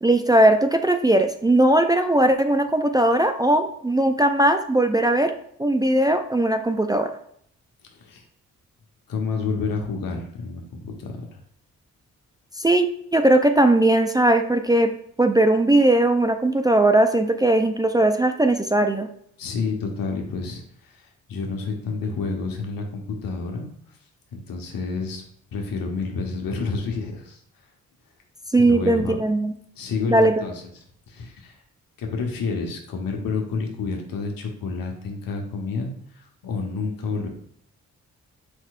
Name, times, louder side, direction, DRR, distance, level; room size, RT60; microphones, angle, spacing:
voice 1, 0.0-5.3 5.6-7.1 12.6-14.9 15.2-19.1 28.5-29.5 30.1-30.3, right 1 dB, 10° right, 6 dB, 0.3 m, -19 dB
voice 2, 7.9-8.2 9.1-11.4 19.4-23.7 24.3-25.2 25.5-27.4 28.7-29.2 29.8-30.5 31.1-31.6 32.0-37.3, left 4 dB, 70° left, 2 dB, 1.0 m, -29 dB
4.5 x 4.5 x 2.4 m, 0.68 s
supercardioid pair, 45°, 35 cm